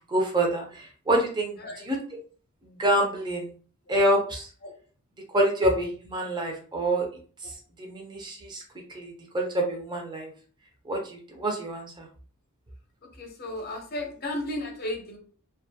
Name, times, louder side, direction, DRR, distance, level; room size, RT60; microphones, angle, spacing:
voice 1, 0.1-2.0 2.6-3.5 3.9-4.5 5.3-7.1 7.4-8.6 8.9-10.3 10.8-12.1, right 1 dB, 20° right, 0 dB, 0.6 m, -27 dB
voice 2, 13.0-15.2, left 1 dB, 45° left, 2 dB, 0.7 m, -34 dB
2.4 x 2.3 x 2.7 m, 0.42 s
head